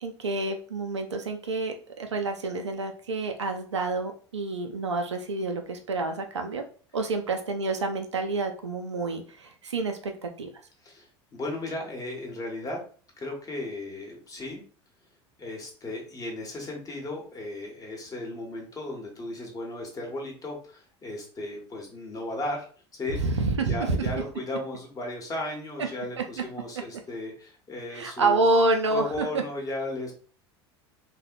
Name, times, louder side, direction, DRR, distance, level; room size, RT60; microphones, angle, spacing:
voice 1, 0.0-6.6 6.9-10.5 23.2-24.1 25.8-25.9 26.2-26.3 27.9-29.3, right 3 dB, 85° right, 5 dB, 0.4 m, -28 dB
voice 2, 10.8-12.8 13.2-14.6 15.4-22.7 23.0-23.2 23.7-28.5 28.9-30.1, left 2 dB, 25° left, 0 dB, 0.9 m, -35 dB
2.7 x 2.0 x 2.4 m, 0.41 s
figure-of-eight pair, 75°, 15 cm